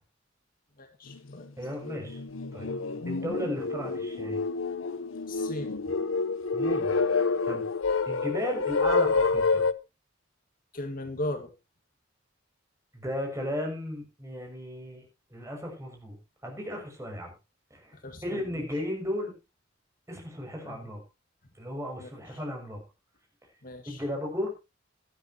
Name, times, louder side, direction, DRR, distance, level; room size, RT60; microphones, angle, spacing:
voice 1, 0.8-1.5 5.3-5.8 10.7-11.5 17.9-18.7 20.6-20.8 22.0-22.1 23.6-24.0, left 1 dB, 45° left, 7 dB, 1.9 m, -37 dB
sound 1, 1.1-1.2 1.7-9.7, left 4 dB, 85° left, 0.9 m, -28 dB
voice 2, 1.6-2.2 2.5-2.7 3.0-4.4 6.5-7.0 7.5-7.6 8.0-9.6 12.9-15.0 15.3-16.2 16.4-17.3 17.7-18.0 18.2-19.3 20.1-21.0 21.6-22.8 23.9-24.6, left 1 dB, 15° right, 2 dB, 6.5 m, -35 dB
17.5 x 12.0 x 2.9 m, 0.27 s
head